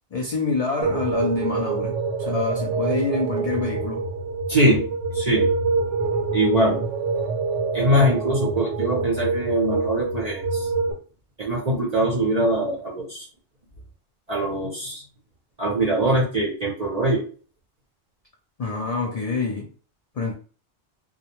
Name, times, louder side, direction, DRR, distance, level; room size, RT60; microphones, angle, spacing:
voice 1, 0.1-4.0 18.6-19.7 20.2-20.3, left 3 dB, 75° left, 0.3 m, -26 dB
sound 1, 0.8-10.9, right 4 dB, 90° right, 0.9 m, -26 dB
voice 2, 4.5-4.9 5.1-5.5 6.3-6.8 7.7-10.7 11.4-13.3 14.3-15.0 15.6-17.2, right 1 dB, 45° right, 0.5 m, -22 dB
2.2 x 2.1 x 2.8 m
omnidirectional pair, 1.2 m